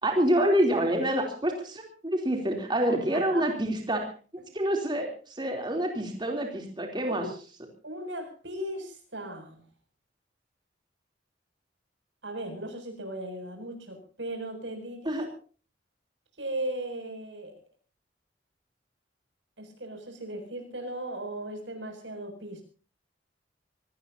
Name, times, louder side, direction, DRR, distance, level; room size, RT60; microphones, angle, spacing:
voice 1, 0.0-4.1 4.5-7.2 15.0-15.3, right 1 dB, 25° right, 2 dB, 3.2 m, -27 dB
voice 2, 2.9-3.5 5.5-5.6 7.1-7.3 7.8-9.7 12.2-15.3 16.4-17.6 19.6-22.6, right 1 dB, 85° right, 5 dB, 7.0 m, -37 dB
25.0 x 18.5 x 2.8 m, 0.38 s
head